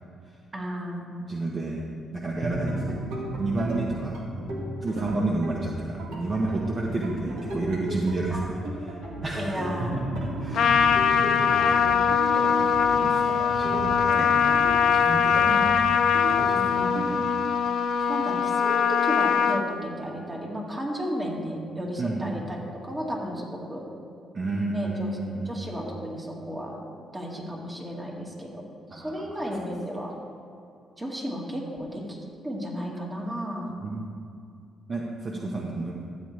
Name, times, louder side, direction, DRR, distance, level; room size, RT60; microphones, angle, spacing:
voice 1, 0.5-1.2 5.0-5.5 8.3-8.5 9.3-10.1 11.3-12.1 15.4-15.7 16.5-17.1 18.1-23.9 24.7-25.2 25.5-26.8 27.1-28.6 28.9-30.1 31.0-32.2 32.4-33.7 35.3-35.5, equal, 20° right, -1 dB, 1.9 m, -34 dB
voice 2, 1.3-1.9 2.1-3.1 3.4-4.2 4.8-9.5 10.4-11.0 11.2-11.7 12.3-14.3 14.9-15.5 16.3-16.9 22.0-22.4 24.3-25.6 28.9-29.5 33.8-34.1 34.9-36.0, right 2 dB, 40° right, -1 dB, 0.9 m, -31 dB
sound 1, 2.4-17.2, right 1 dB, 85° right, 1.6 m, -34 dB
Trumpet, 10.5-19.6, left 7 dB, 65° left, 0.5 m, -22 dB
13.0 x 8.2 x 3.3 m, 2.4 s
cardioid pair, 90°, 0 cm